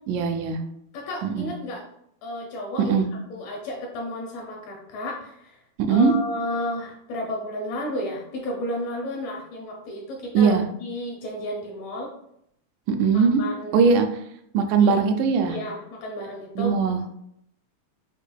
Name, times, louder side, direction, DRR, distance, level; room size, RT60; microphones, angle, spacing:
voice 1, 0.1-0.6 1.2-1.5 2.8-3.1 5.8-6.1 10.3-10.7 12.9-13.4 13.7-14.1 14.5-15.6 16.6-17.0, right 5 dB, 90° right, 6 dB, 2.1 m, -20 dB
voice 2, 0.9-1.8 2.2-3.0 3.3-5.6 5.9-12.1 13.1-13.8 14.8-15.0 15.5-16.7, left 1 dB, 75° left, -1 dB, 1.6 m, -32 dB
6.7 x 2.7 x 2.2 m, 0.75 s
omnidirectional pair, 3.5 m